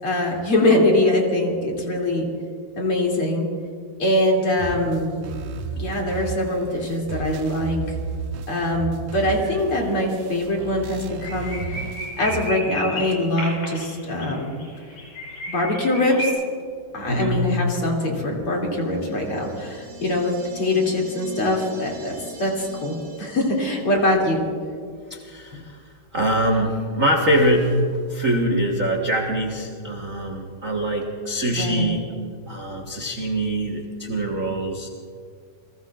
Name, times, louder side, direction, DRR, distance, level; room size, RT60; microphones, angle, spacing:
voice 1, 0.0-2.3 2.8-3.5 4.0-5.1 5.8-7.8 8.5-11.8 12.2-14.5 15.5-16.3 16.9-24.4 25.5-25.6 31.5-31.9, left 1 dB, 40° left, -1 dB, 3.3 m, -23 dB
sound 1, 4.6-12.6, right 5 dB, 85° right, 2.5 m, -34 dB
sound 2, 9.8-9.9 10.1-10.2 10.6-10.7 11.0-16.3, equal, 70° left, 7.2 m, -33 dB
voice 2, 17.1-17.5 25.1-25.8 26.1-27.8 28.1-32.0 32.5-34.9, right 1 dB, 65° right, 0 dB, 0.8 m, -23 dB
sound 3, 18.8-24.2, right 1 dB, 40° right, 4.7 m, -43 dB
30.0 x 19.5 x 2.4 m, 2.1 s
omnidirectional pair, 3.9 m